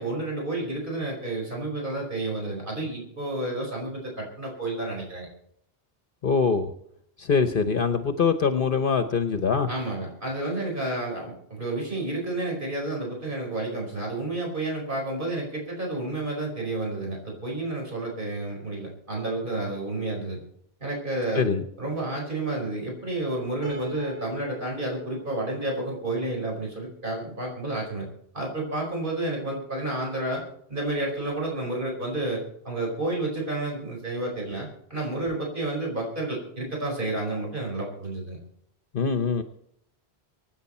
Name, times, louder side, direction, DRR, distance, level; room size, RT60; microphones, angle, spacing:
voice 1, 0.0-5.3 9.7-20.4 20.8-21.5 21.8-28.1 28.3-30.4 30.7-38.4, right 2 dB, 55° right, -1 dB, 5.1 m, -30 dB
voice 2, 6.2-6.7 7.2-9.7 21.3-21.6 38.9-39.4, left 5 dB, 60° left, 9 dB, 1.0 m, -23 dB
Piano, 23.6-26.9, right 4 dB, 75° right, 4.8 m, -42 dB
25.0 x 9.4 x 4.3 m, 0.71 s
omnidirectional pair, 1.1 m